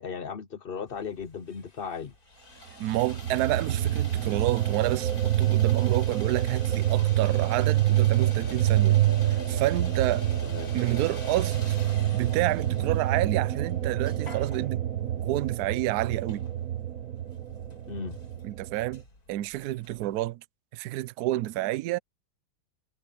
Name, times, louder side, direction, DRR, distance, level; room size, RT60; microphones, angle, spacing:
voice 1, 0.0-2.1 10.4-10.7 17.9-18.2, left 6 dB, 80° left, 0.5 m, -36 dB
Sawing, 0.9-20.3, left 2 dB, 45° left, 5.5 m, -49 dB
voice 2, 2.8-9.0 9.2-10.2 10.7-11.8 12.1-14.8 15.2-16.4 18.4-19.0 19.3-20.4 20.7-22.0, right 16 dB, 75° right, 0.9 m, -29 dB
sound 1, 2.9-19.0, right 12 dB, 45° right, 1.6 m, -27 dB
omnidirectional pair, 2.2 m